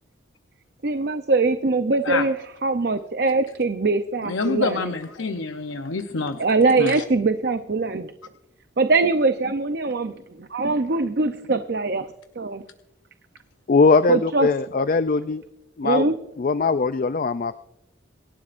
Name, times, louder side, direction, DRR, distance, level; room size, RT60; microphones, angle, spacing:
voice 1, 0.8-4.9 6.4-8.1 8.8-10.1 10.4-12.1 12.4-12.6 14.1-14.5 15.8-16.2, right 3 dB, 55° right, 8 dB, 0.6 m, -22 dB
voice 2, 4.3-6.4 6.8-7.0, left 4 dB, 80° left, 6 dB, 0.8 m, -27 dB
voice 3, 13.7-15.4 15.8-16.1 16.4-17.5, left 4 dB, 45° left, 12 dB, 0.4 m, -20 dB
27.0 x 11.5 x 2.6 m, 0.89 s
head